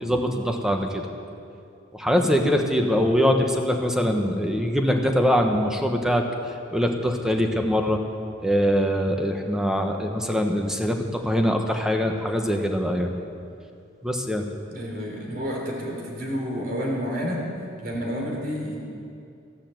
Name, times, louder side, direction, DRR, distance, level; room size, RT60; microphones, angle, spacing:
voice 1, 0.0-1.0 2.0-6.2 6.7-8.0 8.4-13.1 14.0-14.4, equal, 5° right, 3 dB, 1.1 m, -23 dB
voice 2, 2.2-2.5 14.7-17.5 17.8-18.8, equal, 45° right, -1 dB, 3.6 m, -30 dB
14.0 x 11.5 x 7.8 m, 2.5 s
head